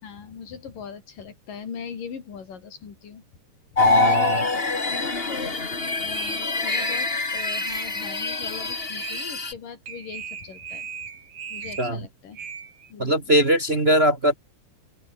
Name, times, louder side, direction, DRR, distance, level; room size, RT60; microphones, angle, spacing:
voice 1, 0.0-3.2 3.7-4.5 5.0-5.5 6.0-10.9 11.5-12.5 12.9-13.2, left 6 dB, 85° left, 5.3 m, -40 dB
sound 1, 3.8-9.5, left 3 dB, 20° left, 2.1 m, -25 dB
voice 2, 3.8-4.4 11.8-12.0 13.0-14.3, equal, 25° right, 1.4 m, -20 dB
sound 2, 3.8-4.6 5.8-5.9 6.1-7.1 7.4-7.9 8.5-8.6 8.9-9.3 9.9-11.9 12.3-12.9 13.4-13.5, right 6 dB, 55° right, 3.9 m, -37 dB
open air
omnidirectional pair, 3.7 m